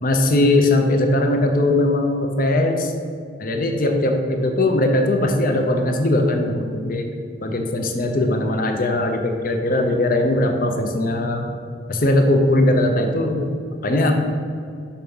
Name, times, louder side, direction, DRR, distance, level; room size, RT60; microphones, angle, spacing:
voice 1, 0.0-2.9 3.4-7.1 7.4-11.5 11.9-13.5 13.8-14.1, left 1 dB, 45° left, 4 dB, 0.6 m, -19 dB
5.8 x 5.0 x 5.4 m, 2.2 s
head